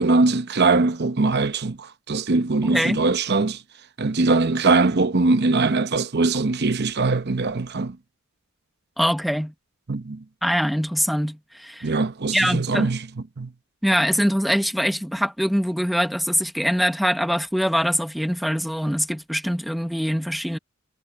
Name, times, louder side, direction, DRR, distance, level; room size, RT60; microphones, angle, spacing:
voice 1, 0.0-3.6 4.0-8.0 9.9-10.2 11.8-13.1 13.4-13.5, right 3 dB, 50° right, 0.8 m, -21 dB
voice 2, 2.6-3.0 9.0-9.5 10.4-11.9 12.3-12.9 13.8-20.6, equal, ahead, 0.9 m, -23 dB
head